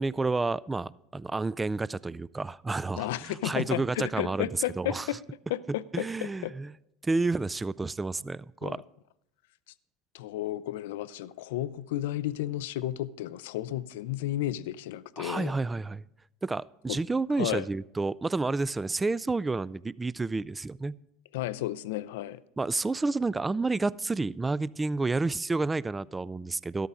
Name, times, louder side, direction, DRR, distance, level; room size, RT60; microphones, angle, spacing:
voice 1, 0.0-5.1 5.9-6.7 7.0-8.8 15.2-16.1 16.4-21.0 22.6-26.9, right 3 dB, 15° right, 0.3 m, -30 dB
voice 2, 3.0-5.2 5.5-6.5 8.6-8.8 10.1-15.5 16.9-17.0 17.4-17.7 21.3-22.4, left 14 dB, 65° left, 0.4 m, -33 dB
13.5 x 13.0 x 3.7 m
figure-of-eight pair, 75°, 0 cm